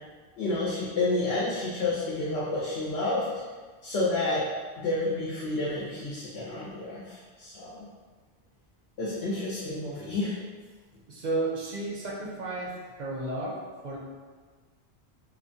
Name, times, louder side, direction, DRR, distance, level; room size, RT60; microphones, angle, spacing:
voice 1, 0.4-3.3 3.8-4.4 4.8-7.9 9.0-10.3, left 2 dB, 85° left, -7 dB, 0.9 m, -30 dB
voice 2, 11.1-14.0, right 2 dB, 55° right, -3 dB, 0.5 m, -33 dB
2.9 x 2.1 x 2.6 m, 1.4 s
omnidirectional pair, 1.1 m